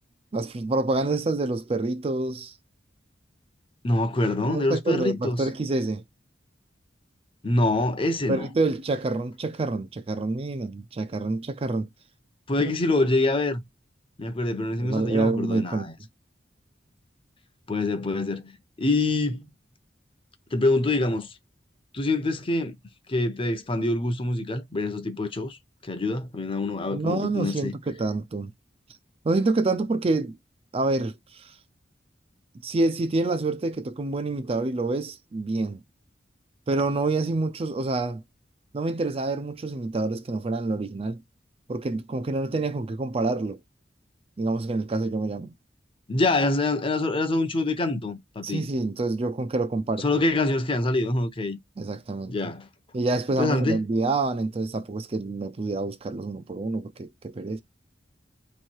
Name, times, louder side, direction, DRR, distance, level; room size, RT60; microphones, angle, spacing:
voice 1, 0.3-2.5 4.4-6.0 8.3-11.9 14.8-15.9 26.9-28.5 29.2-30.4 30.7-31.5 32.6-35.8 36.7-38.2 38.7-41.2 41.7-43.6 44.4-45.5 48.4-50.1 51.8-52.4 52.9-57.6, right 2 dB, 35° right, 0.4 m, -27 dB
voice 2, 3.8-5.4 7.4-8.5 12.5-13.6 14.2-15.9 17.7-19.5 20.5-21.3 21.9-22.8 23.1-25.6 25.8-27.7 46.1-48.6 50.0-51.6 52.3-52.7 53.4-53.8, left 2 dB, 30° left, 0.7 m, -25 dB
3.3 x 3.1 x 4.4 m
head